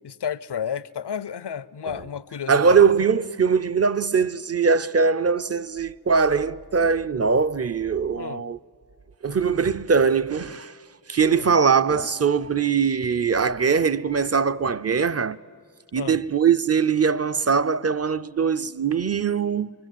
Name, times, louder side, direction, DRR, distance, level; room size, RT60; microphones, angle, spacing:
voice 1, 0.0-2.9 8.2-8.4 11.3-11.5 16.0-16.2, left 8 dB, 90° left, 0.6 m, -32 dB
voice 2, 2.5-8.6 9.2-10.7 11.1-15.4 15.9-19.7, right 6 dB, 40° right, 0.6 m, -21 dB
25.5 x 23.0 x 9.2 m
wide cardioid pair, 45°, 39 cm